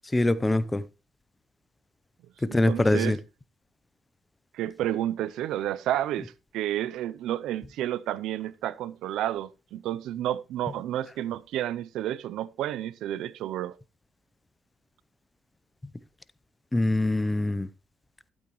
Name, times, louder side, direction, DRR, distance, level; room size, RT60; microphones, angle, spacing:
voice 1, 0.1-0.8 2.4-3.2 16.7-17.7, left 2 dB, 15° left, 0.7 m, -23 dB
voice 2, 2.5-3.2 4.5-13.8, right 12 dB, 85° right, 0.5 m, -31 dB
12.0 x 8.7 x 3.1 m
cardioid pair, 90°, 0 cm